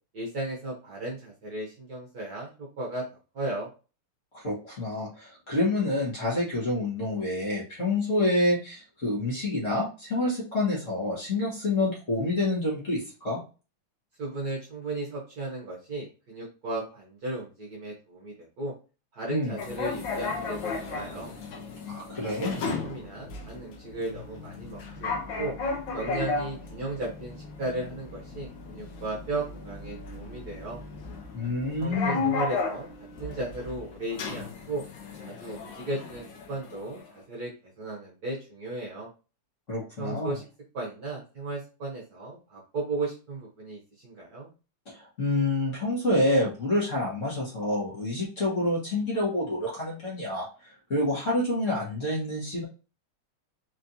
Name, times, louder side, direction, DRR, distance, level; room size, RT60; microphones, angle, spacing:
voice 1, 0.1-3.0 3.3-3.7 14.2-18.7 19.1-21.3 22.2-25.5 25.9-30.8 31.8-32.9 33.2-34.8 35.2-37.5 37.8-39.1 40.0-40.5 40.7-44.5, right 2 dB, 50° right, -3 dB, 1.4 m, -35 dB
voice 2, 4.4-13.4 19.3-19.6 21.9-22.6 31.3-32.3 39.7-40.3 44.9-52.6, left 1 dB, 35° left, -4 dB, 1.8 m, -28 dB
sound 1, 19.6-37.1, left 4 dB, 65° left, 1.4 m, -35 dB
4.4 x 3.2 x 2.7 m, 0.33 s
omnidirectional pair, 2.4 m